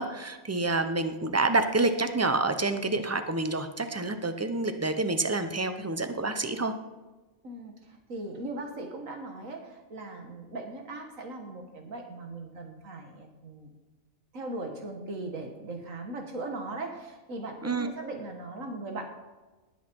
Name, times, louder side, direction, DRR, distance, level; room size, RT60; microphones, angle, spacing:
voice 1, 0.0-6.7 17.6-17.9, right 3 dB, 15° right, 8 dB, 0.6 m, -28 dB
voice 2, 7.4-13.7 14.3-19.0, right 2 dB, 80° right, 4 dB, 1.8 m, -39 dB
19.0 x 8.2 x 4.5 m, 1.2 s
omnidirectional pair, 1.4 m